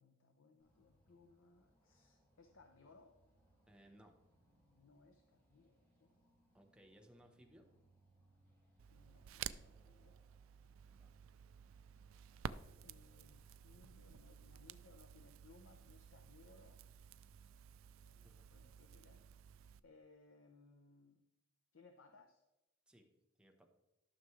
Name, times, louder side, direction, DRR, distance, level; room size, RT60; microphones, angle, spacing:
voice 1, 0.0-3.2 4.7-6.1 8.9-10.2 12.8-16.8 18.0-19.3 19.8-21.2 21.7-22.4, left 3 dB, 70° left, 5 dB, 0.7 m, -65 dB
sound 1, 0.6-15.2, right 1 dB, 10° left, 3.2 m, -74 dB
voice 2, 3.7-4.1 6.5-7.7 10.9-11.1 17.6-17.7 18.2-18.5 22.9-23.1 23.4-23.7, right 1 dB, 5° right, 3 dB, 1.0 m, -64 dB
Crackle, 8.8-19.8, right 8 dB, 85° right, 0.4 m, -53 dB
12.5 x 6.2 x 3.2 m, 0.96 s
head